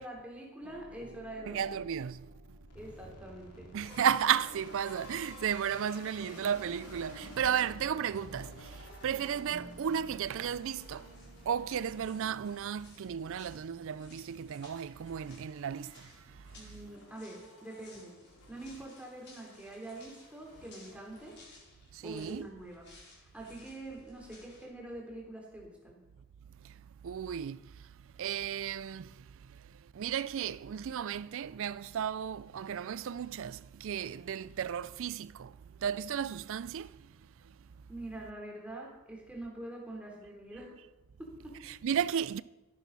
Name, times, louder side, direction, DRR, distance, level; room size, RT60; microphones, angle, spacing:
voice 1, 0.0-1.8 2.7-3.7 16.5-18.1 18.5-21.4 22.0-22.9 23.2-26.0 37.9-40.8 41.2-41.6, right 1 dB, 5° right, 3.1 m, -45 dB
sound 1, 0.6-5.9 6.2-12.5, right 1 dB, 35° right, 1.0 m, -53 dB
voice 2, 1.5-2.6 3.7-11.1 11.5-16.6 21.9-22.5 26.6-37.6 41.6-42.4, right 8 dB, 60° right, 0.4 m, -34 dB
sound 2, 2.7-21.9, left 2 dB, 90° left, 3.4 m, -54 dB
sound 3, 11.1-24.7, left 2 dB, 50° left, 4.5 m, -59 dB
13.5 x 10.5 x 5.5 m
head